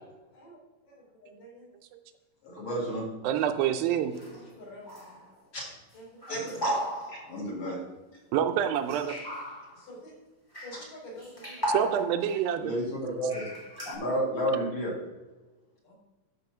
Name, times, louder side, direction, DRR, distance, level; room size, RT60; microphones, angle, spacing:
voice 1, 0.3-1.7 4.3-5.2 5.9-6.4 9.7-10.1 10.6-12.0 15.8-15.9, left 1 dB, 65° left, -4 dB, 5.2 m, -48 dB
voice 2, 2.4-3.1 5.5-5.7 6.3-6.7 7.1-7.8 12.6-13.5 13.9-14.9, equal, 40° left, -3 dB, 2.2 m, -31 dB
voice 3, 3.2-4.2 8.3-9.2 11.7-12.7, right 9 dB, 85° right, 7 dB, 2.5 m, -27 dB
sound 1, 4.1-4.6 4.9-5.3 6.2-7.4 8.9-9.8 10.5-10.8 11.2-12.4 13.3-14.0, right 1 dB, 15° left, 0.8 m, -35 dB
12.5 x 4.2 x 6.0 m, 1.2 s
omnidirectional pair, 4.1 m